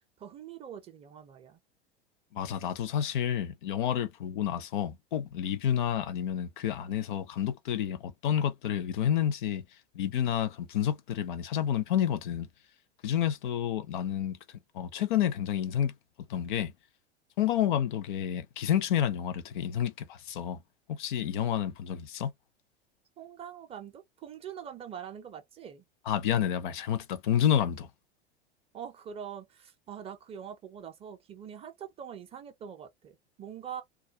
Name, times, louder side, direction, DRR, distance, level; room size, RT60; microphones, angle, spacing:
voice 1, 0.2-1.6 23.2-25.9 28.7-33.8, right 8 dB, 20° right, 0.5 m, -44 dB
voice 2, 2.3-9.6 9.9-12.5 13.0-14.4 14.7-15.9 16.3-16.7 17.4-20.6 20.9-22.3 26.1-27.9, left 10 dB, 50° left, 0.5 m, -29 dB
2.3 x 2.1 x 2.7 m
figure-of-eight pair, 90°, 33 cm